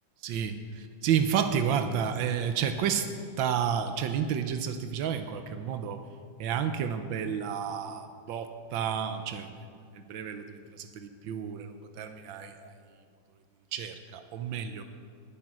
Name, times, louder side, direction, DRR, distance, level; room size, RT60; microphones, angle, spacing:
voice 1, 0.2-3.1 3.4-6.0 6.4-9.6 10.1-12.7 13.7-14.8, right 8 dB, 90° right, 8 dB, 1.5 m, -31 dB
11.0 x 8.9 x 9.7 m, 2.1 s
omnidirectional pair, 2.0 m